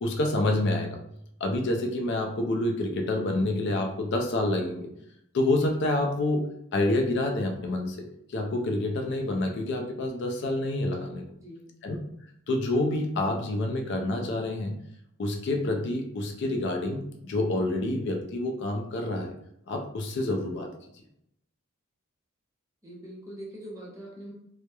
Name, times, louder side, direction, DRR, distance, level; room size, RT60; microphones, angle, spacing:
voice 1, 0.0-1.0 1.4-4.9 5.3-11.2 11.8-12.0 12.5-14.8 15.2-19.3 19.7-20.7, left 2 dB, 55° left, 3 dB, 0.4 m, -28 dB
voice 2, 11.4-11.7 22.8-24.3, right 1 dB, 15° right, -3 dB, 0.5 m, -42 dB
2.8 x 2.0 x 2.2 m, 0.74 s
head